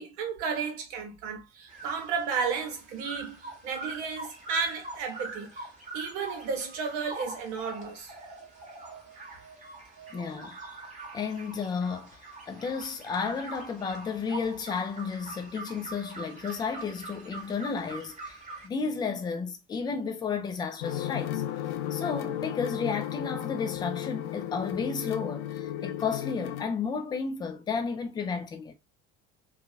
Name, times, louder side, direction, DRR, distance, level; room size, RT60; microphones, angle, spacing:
voice 1, 0.0-5.7 5.9-8.1, right 5 dB, 55° right, 1.0 m, -33 dB
sound 1, 1.7-18.7, right 3 dB, 20° right, 1.0 m, -44 dB
voice 2, 10.1-10.6 11.1-12.2 12.5-21.4 21.9-28.7, left 5 dB, 10° left, 0.4 m, -32 dB
sound 2, 20.8-26.6, left 11 dB, 65° left, 0.5 m, -34 dB
2.7 x 2.3 x 2.4 m
figure-of-eight pair, 65°, 37 cm